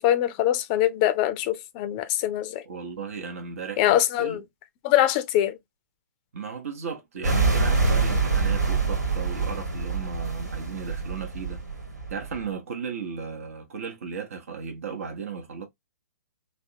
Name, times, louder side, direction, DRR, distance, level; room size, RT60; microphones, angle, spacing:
voice 1, 0.0-2.6 3.8-4.4 4.8-5.6, left 13 dB, 30° left, 0.4 m, -23 dB
voice 2, 2.7-4.4 6.3-11.6 12.1-15.6, right 6 dB, 55° right, 0.8 m, -35 dB
sound 1, 7.2-12.5, right 4 dB, 80° right, 1.5 m, -25 dB
3.3 x 2.1 x 2.6 m
figure-of-eight pair, 120°, 9 cm